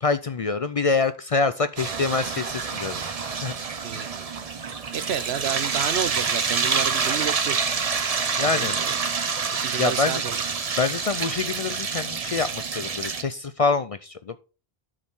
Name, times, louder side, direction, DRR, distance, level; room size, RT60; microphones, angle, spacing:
voice 1, 0.0-3.5 3.9-4.0 8.4-8.8 9.8-10.2 10.8-14.4, left 4 dB, 50° left, 0.4 m, -26 dB
sound 1, 1.8-13.2, right 5 dB, 40° right, 0.8 m, -27 dB
voice 2, 3.8-4.3 4.9-7.6 8.3-9.0 9.5-10.4, right 9 dB, 90° right, 1.0 m, -31 dB
8.6 x 6.4 x 4.3 m
omnidirectional pair, 1.0 m